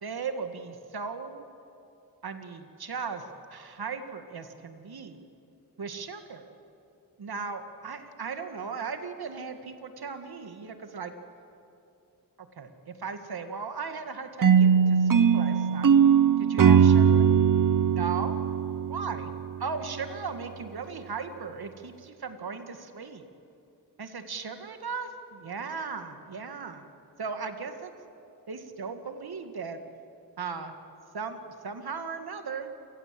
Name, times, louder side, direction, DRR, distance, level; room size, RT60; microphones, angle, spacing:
voice 1, 0.0-1.5 2.2-5.2 5.8-6.4 7.2-11.1 12.6-15.9 16.4-17.3 17.9-18.4 18.9-19.2 19.6-23.2 24.0-26.8 27.2-27.9 28.5-29.8 30.4-30.7 31.1-32.7, right 5 dB, 75° right, 7 dB, 2.0 m, -37 dB
sound 1, 14.4-19.5, right 7 dB, 55° right, 0.9 m, -20 dB
28.5 x 19.0 x 7.7 m, 2.6 s
cardioid pair, 60°, 38 cm